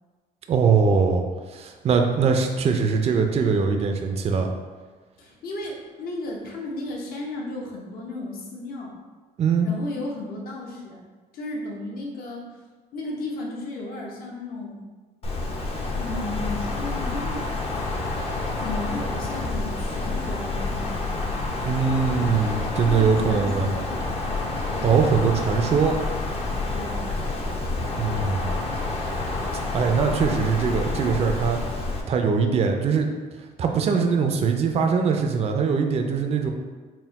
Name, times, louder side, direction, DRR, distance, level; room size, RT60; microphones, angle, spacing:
voice 1, 0.5-1.2 1.5-4.5 9.4-9.7 21.6-23.7 24.8-25.9 27.9-28.6 29.7-31.6 32.1-33.1 33.6-36.5, right 5 dB, 40° right, 4 dB, 0.4 m, -22 dB
voice 2, 5.2-8.9 9.6-11.0 11.3-12.6 12.9-14.9 16.0-17.5 18.5-21.4 22.9-24.0 24.7-25.0 26.7-27.3, left 2 dB, 60° left, -1 dB, 0.9 m, -34 dB
Wind, 15.2-32.0, left 2 dB, 35° left, 0.6 m, -28 dB
4.2 x 2.1 x 4.0 m, 1.4 s
cardioid pair, 110°, 17 cm